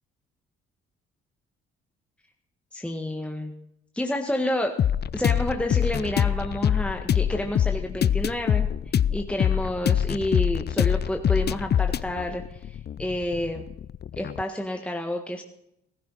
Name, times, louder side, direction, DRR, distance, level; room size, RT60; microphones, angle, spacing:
voice 1, 2.7-3.5 3.9-4.8 5.1-8.7 9.1-13.6 14.1-15.4, left 1 dB, 5° left, 3 dB, 1.6 m, -29 dB
sound 1, 4.8-14.4, left 9 dB, 35° left, 0.5 m, -25 dB
16.0 x 14.5 x 4.1 m, 0.79 s
hypercardioid pair, 55°, 30 cm